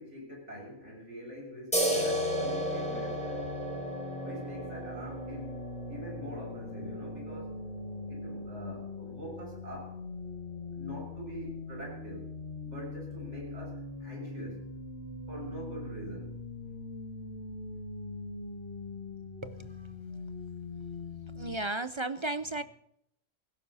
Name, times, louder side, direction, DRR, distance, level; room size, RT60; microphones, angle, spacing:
voice 1, 0.0-3.5 4.2-5.5 5.9-7.6 8.1-10.0 10.7-12.3 12.6-14.6 15.3-16.4 16.6-16.7 22.6-22.7, equal, 75° right, 6.8 m, -44 dB
sound 1, 1.7-8.9, right 1 dB, 5° left, 5.8 m, -35 dB
sound 2, 1.9-21.6, left 3 dB, 50° left, 2.1 m, -42 dB
voice 2, 21.4-22.6, right 2 dB, 35° right, 0.4 m, -34 dB
17.5 x 16.0 x 4.2 m
omnidirectional pair, 1.2 m